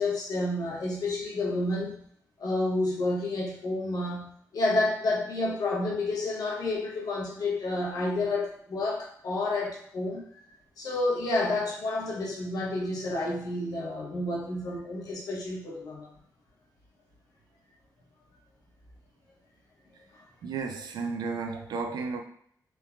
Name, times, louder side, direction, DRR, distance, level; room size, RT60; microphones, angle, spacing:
voice 1, 0.0-2.0 2.4-10.2 10.8-16.1, left 2 dB, 65° left, -2 dB, 0.8 m, -30 dB
voice 2, 20.4-22.2, right 4 dB, 90° right, 5 dB, 0.4 m, -33 dB
3.2 x 2.1 x 2.3 m, 0.64 s
wide cardioid pair, 130°, 7 cm